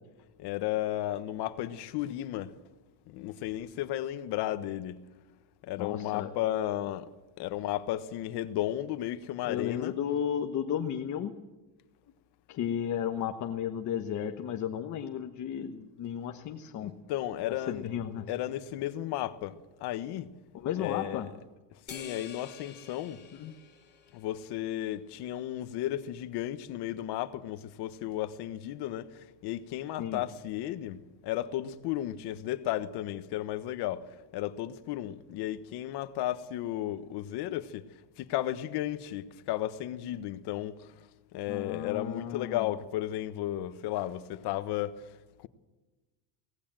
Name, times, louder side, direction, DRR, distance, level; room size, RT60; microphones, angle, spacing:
voice 1, 0.4-2.6 3.1-5.0 5.6-7.1 7.4-10.0 16.8-17.9 18.3-20.3 20.8-21.4 21.7-23.2 24.1-45.5, left 13 dB, 55° left, 1.3 m, -34 dB
voice 2, 5.8-6.3 9.5-11.3 12.5-16.9 17.7-18.3 20.5-21.3 23.4-23.5 30.0-30.2 41.5-42.6, left 9 dB, 40° left, 1.2 m, -33 dB
sound 1, 21.9-24.6, left 6 dB, 20° left, 2.8 m, -48 dB
25.0 x 18.0 x 7.6 m
cardioid pair, 180°, 46 cm